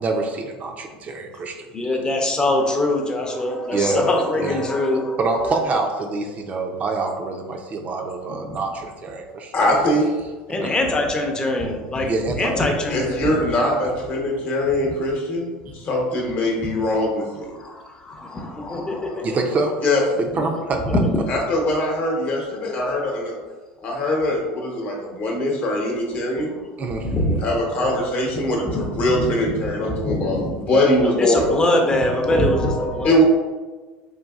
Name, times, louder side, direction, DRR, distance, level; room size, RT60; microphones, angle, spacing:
voice 1, 0.0-1.7 3.7-4.1 4.4-4.7 5.2-9.5 10.5-10.7 12.1-12.6 13.2-13.4 13.8-13.9 19.2-19.7 20.2-21.0 26.8-27.1, right 3 dB, 35° right, 3 dB, 0.4 m, -26 dB
voice 2, 1.7-5.6 8.4-8.6 10.5-12.1 12.4-13.5 14.8-14.9 15.7-15.8 17.6-19.3 20.7-21.2 22.0-23.2 26.9-27.4 28.6-29.3 29.9-30.6 31.2-33.2, left 1 dB, 20° left, 2 dB, 0.6 m, -23 dB
voice 3, 9.5-10.1 12.9-17.6 19.8-20.0 21.3-23.4 23.8-26.5 27.4-31.5 33.0-33.2, left 1 dB, 45° left, 0 dB, 0.9 m, -22 dB
3.9 x 2.6 x 2.4 m, 1.3 s
supercardioid pair, 100°, 4 cm